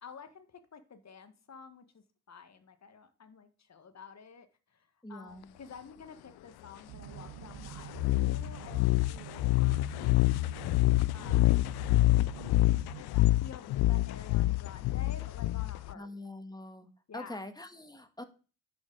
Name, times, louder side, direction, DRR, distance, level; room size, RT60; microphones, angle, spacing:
voice 1, 0.0-4.5 4.7-10.1 11.1-12.6 12.9-16.1 17.1-17.4, left 6 dB, 40° left, 10 dB, 1.5 m, -51 dB
voice 2, 5.0-5.5 15.9-16.9 17.1-18.2, left 1 dB, 10° left, 9 dB, 1.7 m, -44 dB
sound 1, 6.9-13.0, right 10 dB, 70° right, 1.0 m, -46 dB
sound 2, 8.0-15.9, left 18 dB, 60° left, 0.5 m, -27 dB
11.0 x 7.0 x 4.0 m, 0.37 s
hypercardioid pair, 45°, 43 cm